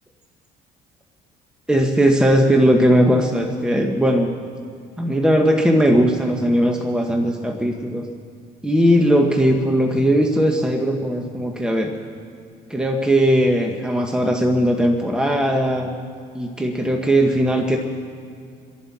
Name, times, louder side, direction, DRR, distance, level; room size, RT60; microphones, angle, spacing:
voice 1, 1.7-4.3 5.0-8.1 8.6-11.9 12.7-15.9 16.3-17.8, equal, 5° right, 2 dB, 1.1 m, -18 dB
28.0 x 11.0 x 4.2 m, 2.4 s
cardioid pair, 110°, 17 cm